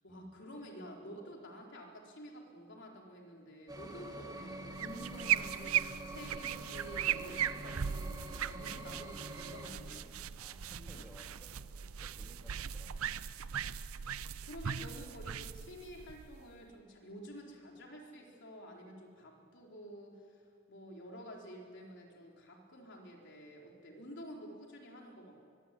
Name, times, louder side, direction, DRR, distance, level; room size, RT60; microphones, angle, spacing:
voice 1, 0.0-8.1 8.4-10.1 10.8-11.0 14.4-25.4, equal, 55° left, 0 dB, 4.2 m, -50 dB
sound 1, 3.7-9.7, right 2 dB, 20° right, 1.8 m, -46 dB
sound 2, 4.4-16.2, right 1 dB, 45° right, 1.3 m, -57 dB
sound 3, 4.7-16.7, right 9 dB, 85° right, 0.6 m, -38 dB
voice 2, 10.4-13.1, equal, 5° left, -2 dB, 3.0 m, -59 dB
24.0 x 22.0 x 8.5 m, 2.2 s
head